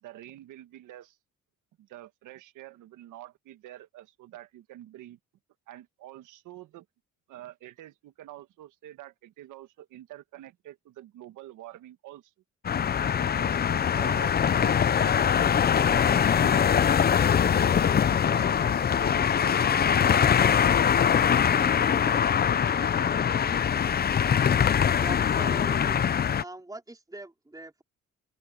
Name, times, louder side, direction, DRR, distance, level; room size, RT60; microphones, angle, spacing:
voice 1, 0.0-1.2 1.8-5.2 5.7-6.8 7.3-12.3 13.2-16.8 17.5-23.7, right 14 dB, 90° right, 1.6 m, -47 dB
sound 1, 12.6-26.4, left 8 dB, 30° left, 0.5 m, -23 dB
voice 2, 25.0-26.0 26.4-27.8, right 2 dB, 10° right, 4.1 m, -41 dB
open air
cardioid pair, 90°, 30 cm